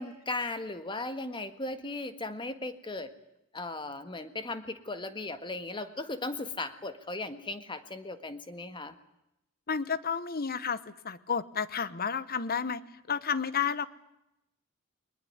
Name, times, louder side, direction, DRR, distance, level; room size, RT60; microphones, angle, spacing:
voice 1, 0.0-3.1 3.5-8.9, left 2 dB, 25° left, 10 dB, 1.7 m, -37 dB
voice 2, 9.7-10.8 11.0-12.8 13.1-13.9, left 6 dB, 45° left, 16 dB, 1.0 m, -31 dB
22.0 x 20.5 x 9.5 m, 0.88 s
head